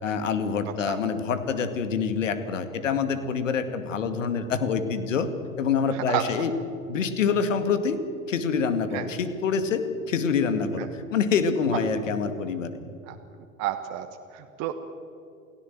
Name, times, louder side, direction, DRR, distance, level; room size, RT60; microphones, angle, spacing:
voice 1, 0.0-5.3 5.6-6.5 6.9-8.0 8.3-12.7, left 6 dB, 65° left, 9 dB, 2.3 m, -26 dB
voice 2, 5.9-6.3 8.9-9.1 10.8-10.9 12.8-13.2 13.6-14.7, right 14 dB, 40° right, 6 dB, 1.6 m, -31 dB
29.0 x 17.0 x 7.8 m, 2.5 s
figure-of-eight pair, 85°, 41 cm